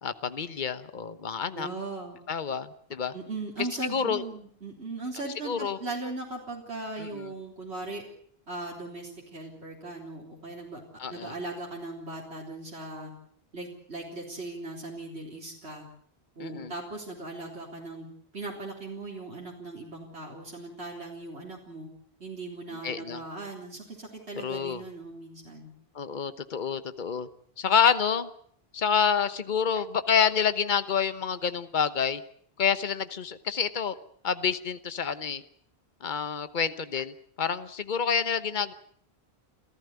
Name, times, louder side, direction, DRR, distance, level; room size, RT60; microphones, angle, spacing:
voice 1, 0.0-1.7 2.3-3.1 3.6-4.2 5.4-5.8 7.0-7.3 11.0-11.3 16.4-16.7 22.8-23.2 24.3-24.8 25.9-27.3 27.6-28.3 28.7-32.2 32.6-33.9 34.2-35.4 36.0-38.7, left 7 dB, 50° left, 12 dB, 1.2 m, -28 dB
voice 2, 1.5-2.2 3.1-8.0 8.5-10.8 11.1-13.1 13.5-15.9 16.4-18.1 18.3-21.9 22.2-25.7, right 2 dB, 85° right, -2 dB, 4.2 m, -38 dB
27.5 x 15.0 x 8.2 m, 0.62 s
omnidirectional pair, 1.1 m